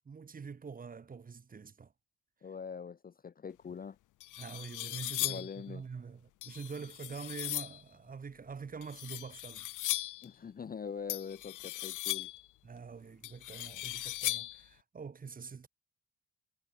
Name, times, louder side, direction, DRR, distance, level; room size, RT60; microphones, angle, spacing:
voice 1, 0.0-1.9 4.4-9.7 12.6-15.7, right 5 dB, 30° right, 1.0 m, -45 dB
voice 2, 2.4-4.0 5.2-5.8 10.2-12.3, left 6 dB, 30° left, 0.6 m, -43 dB
sound 1, 3.7-3.8 4.2-5.6 6.4-7.8 8.8-10.3 11.1-12.5 13.2-14.6, left 16 dB, 85° left, 1.2 m, -38 dB
cardioid pair, 90°, 30 cm